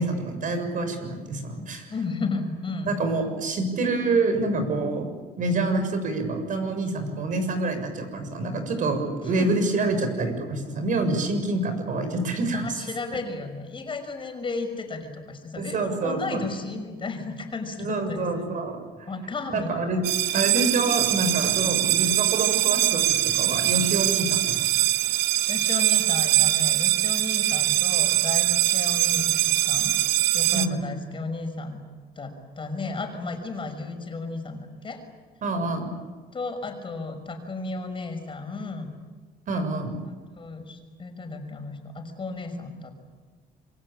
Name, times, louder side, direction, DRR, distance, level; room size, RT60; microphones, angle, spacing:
voice 1, 0.0-1.9 2.8-5.1 5.4-12.7 15.6-16.4 17.8-19.1 19.5-20.0 20.3-23.0 23.3-24.9 30.5-30.7 35.4-35.9 39.5-40.0, right 2 dB, 50° right, 7 dB, 6.9 m, -27 dB
voice 2, 1.9-2.9 9.4-9.5 12.5-18.3 19.1-20.0 20.3-20.4 21.4-21.6 25.5-30.0 30.3-31.8 32.2-35.0 36.3-38.9 40.0-42.9, left 3 dB, 30° left, 6 dB, 6.0 m, -34 dB
sound 1, 20.0-30.7, right 16 dB, 90° right, 1.2 m, -22 dB
27.0 x 24.0 x 8.8 m, 1.4 s
cardioid pair, 110°, 17 cm